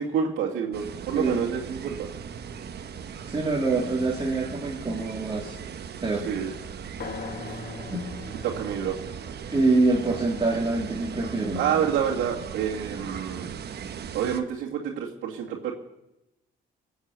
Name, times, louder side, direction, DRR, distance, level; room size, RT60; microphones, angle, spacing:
voice 1, 0.0-2.1 6.2-6.5 7.5-7.6 8.4-9.0 11.5-13.5 14.1-15.7, right 8 dB, 85° right, -5 dB, 2.2 m, -28 dB
sound 1, 0.7-14.4, right 7 dB, 55° right, 1.1 m, -38 dB
voice 2, 3.3-5.6 6.0-6.3 7.9-8.1 9.5-11.6, right 3 dB, 25° right, -2 dB, 2.5 m, -25 dB
sound 2, 7.0-10.9, left 6 dB, 50° left, 1.5 m, -42 dB
19.5 x 7.3 x 8.3 m, 0.90 s
cardioid pair, 90°, 20 cm